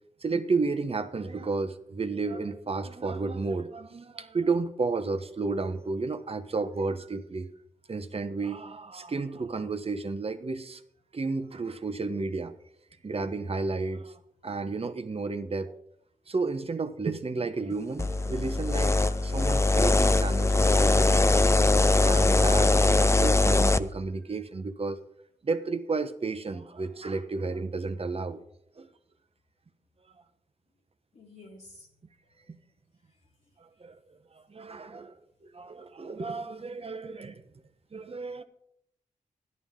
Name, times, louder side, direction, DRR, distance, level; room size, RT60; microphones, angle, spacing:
voice 1, 0.2-7.5 7.9-10.8 11.1-12.5 13.0-15.7 16.3-25.0 25.4-28.4 28.8-28.9 33.8-34.0 34.5-37.4 37.9-38.4, right 3 dB, 40° right, 1.1 m, -32 dB
sound 1, 18.0-23.8, left 2 dB, 20° left, 0.5 m, -22 dB
voice 2, 31.1-31.9 32.4-32.5, left 2 dB, 55° left, 2.1 m, -50 dB
13.5 x 11.0 x 3.7 m
cardioid pair, 65°, 15 cm